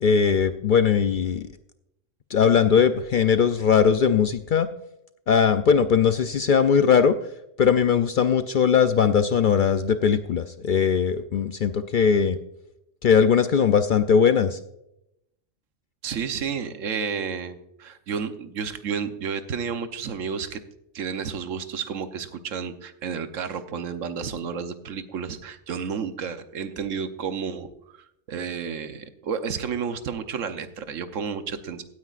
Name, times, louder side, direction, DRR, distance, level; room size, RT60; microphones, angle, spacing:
voice 1, 0.0-1.4 2.3-4.7 5.3-7.1 7.6-12.4 13.0-14.6, left 7 dB, 60° left, 10 dB, 0.5 m, -20 dB
voice 2, 16.0-20.6 20.9-31.8, right 6 dB, 90° right, 10 dB, 1.2 m, -31 dB
16.5 x 9.5 x 2.5 m, 0.82 s
omnidirectional pair, 1.3 m